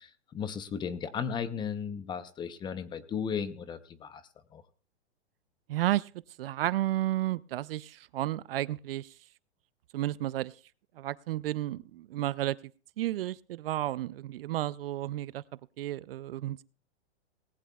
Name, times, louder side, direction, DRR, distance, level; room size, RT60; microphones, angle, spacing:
voice 1, 0.0-4.2 4.5-4.6, left 7 dB, 15° left, 13 dB, 0.7 m, -35 dB
voice 2, 5.7-6.1 6.4-9.1 9.9-10.5 11.0-12.6 13.0-15.4 15.8-16.6, right 14 dB, 60° right, 21 dB, 0.5 m, -32 dB
19.0 x 15.0 x 2.3 m, 0.38 s
hypercardioid pair, 135°, 34 cm